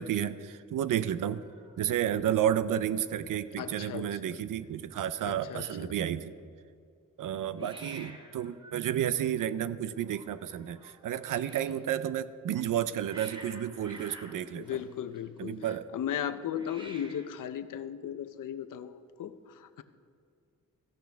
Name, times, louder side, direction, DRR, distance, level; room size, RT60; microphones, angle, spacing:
voice 1, 0.0-1.4 1.8-6.3 7.2-14.7 15.4-15.9, right 10 dB, 85° right, 14 dB, 0.6 m, -31 dB
Hiss, 1.3-2.6 2.9-3.3 3.6-3.7 3.9-4.5 7.5-11.8 12.6-15.5 16.5-17.4, right 1 dB, 15° right, 1.1 m, -52 dB
voice 2, 3.6-4.4 5.2-5.9 7.6-7.7 14.5-19.8, left 9 dB, 85° left, 11 dB, 0.7 m, -37 dB
16.5 x 14.5 x 3.5 m, 2.3 s
wide cardioid pair, 155°, 31 cm